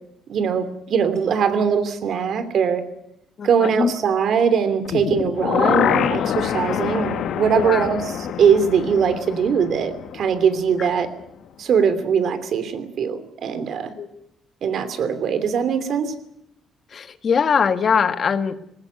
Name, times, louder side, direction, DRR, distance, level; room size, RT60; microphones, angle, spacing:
voice 1, 0.3-2.8 3.4-8.0 8.4-11.1 11.6-13.9 14.6-16.1, right 7 dB, 65° right, 11 dB, 2.9 m, -21 dB
voice 2, 3.4-3.9 7.5-7.9 10.8-10.9 14.0-14.1 16.9-18.5, left 6 dB, 50° left, 10 dB, 1.7 m, -21 dB
sound 1, 4.8-10.9 11.2-11.3, left 9 dB, 75° left, 1.3 m, -25 dB
19.5 x 16.0 x 9.7 m, 0.80 s
cardioid pair, 90°, 0 cm